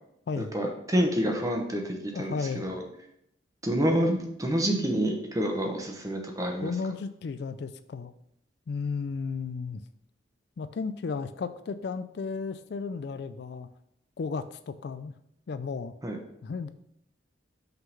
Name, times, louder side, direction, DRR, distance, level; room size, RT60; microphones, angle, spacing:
voice 1, 0.4-2.8 3.6-6.7 16.0-16.2, equal, 20° right, 2 dB, 1.0 m, -28 dB
voice 2, 2.1-2.7 6.6-8.1 8.7-9.8 10.6-13.7 14.2-15.1 15.5-15.9 16.4-16.7, left 5 dB, 60° left, 11 dB, 0.4 m, -34 dB
5.7 x 3.8 x 5.3 m, 0.76 s
head